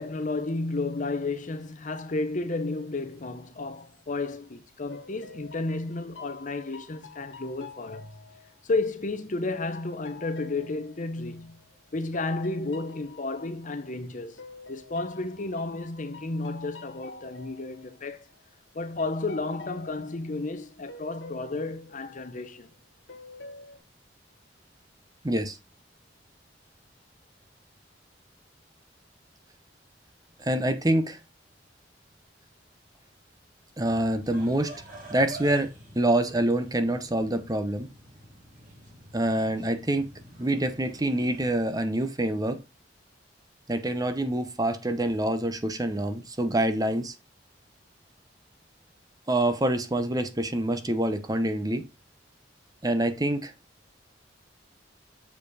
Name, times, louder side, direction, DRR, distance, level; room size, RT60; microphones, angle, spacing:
voice 1, 0.0-8.1 8.6-11.6 11.9-14.4 14.7-18.2 18.7-22.7, left 2 dB, 45° left, 0.8 m, -32 dB
sound 1, 4.4-4.5 4.9-9.2 9.7-14.0 14.4-18.6 19.0-22.7 23.1-23.8, left 4 dB, 75° left, 1.8 m, -48 dB
voice 2, 25.2-25.6 30.4-31.2 33.8-34.7 35.1-37.9 39.1-40.1 40.4-42.6 43.7-47.1 49.3-51.8 52.8-53.5, right 1 dB, 20° right, 0.9 m, -26 dB
sound 2, 33.8-41.5, right 1 dB, 45° right, 4.2 m, -47 dB
7.0 x 5.1 x 4.8 m
head